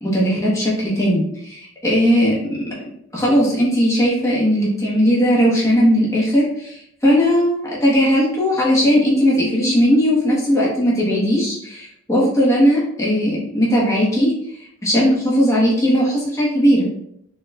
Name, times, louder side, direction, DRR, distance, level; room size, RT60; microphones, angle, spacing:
voice 1, 0.0-2.3 3.1-14.3 14.8-16.9, equal, 15° left, -7 dB, 0.9 m, -17 dB
4.4 x 2.3 x 3.3 m, 0.73 s
head